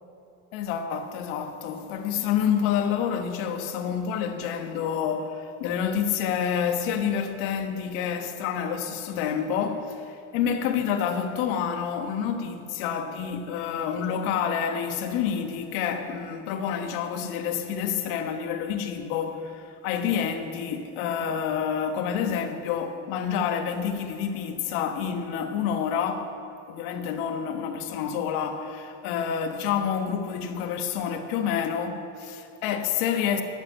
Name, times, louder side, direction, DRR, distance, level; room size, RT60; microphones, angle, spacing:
voice 1, 0.5-26.3 26.7-33.4, left 8 dB, 75° left, 1.3 m, -28 dB
12.0 x 7.8 x 8.4 m
cardioid pair, 170°, 44 cm